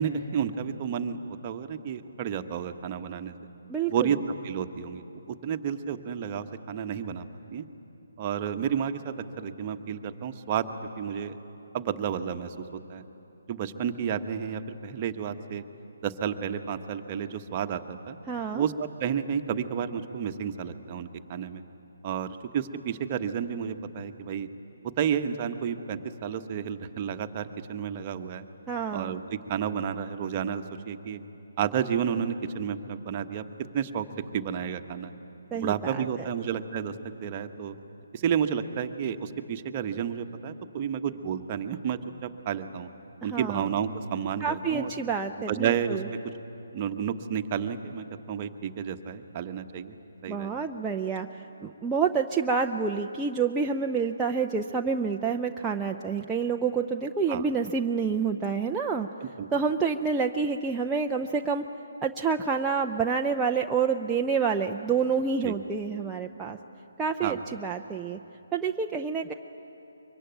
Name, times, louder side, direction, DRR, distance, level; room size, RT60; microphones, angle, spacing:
voice 1, 0.0-3.3 3.9-4.2 4.4-7.3 7.5-7.7 8.2-10.7 11.0-11.4 11.7-13.0 13.5-15.6 16.0-18.1 18.5-21.6 22.0-24.5 25.0-28.4 28.9-31.2 31.6-33.4 33.7-34.1 34.3-35.1 35.5-37.7 38.1-42.9 43.2-44.9 45.5-46.0 46.7-50.0 50.2-50.6 57.3-57.5 59.2-59.5 65.4-65.6 67.2-67.4, right 8 dB, 30° right, 7 dB, 1.2 m, -31 dB
voice 2, 3.7-4.1 18.3-18.6 28.7-29.2 35.5-36.0 43.2-43.7 44.4-46.1 50.3-51.3 51.6-59.1 59.5-61.6 62.0-66.6 67.0-68.2 68.5-69.3, right 5 dB, 10° right, 0 dB, 0.6 m, -28 dB
23.5 x 23.5 x 9.3 m, 3.0 s
figure-of-eight pair, 145°, 0 cm